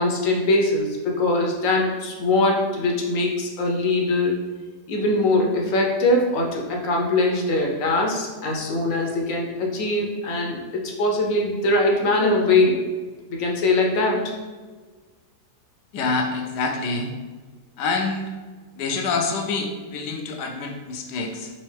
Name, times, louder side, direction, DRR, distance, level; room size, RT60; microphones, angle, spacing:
voice 1, 0.0-4.4 4.9-12.8 13.3-14.2, left 2 dB, 65° left, 0 dB, 0.9 m, -22 dB
voice 2, 15.9-17.1 17.8-18.3 18.8-21.5, left 4 dB, 85° left, 3 dB, 1.2 m, -26 dB
4.2 x 3.7 x 3.2 m, 1.4 s
omnidirectional pair, 1.7 m